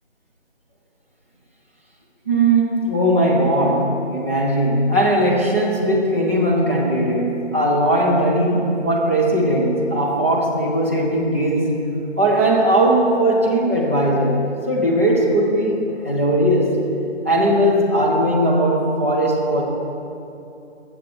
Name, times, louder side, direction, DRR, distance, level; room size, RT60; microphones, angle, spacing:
voice 1, 2.2-11.7 12.2-16.7 17.2-19.6, right 1 dB, 10° right, -5 dB, 0.8 m, -18 dB
20.0 x 7.5 x 4.8 m, 2.8 s
figure-of-eight pair, 155°, 36 cm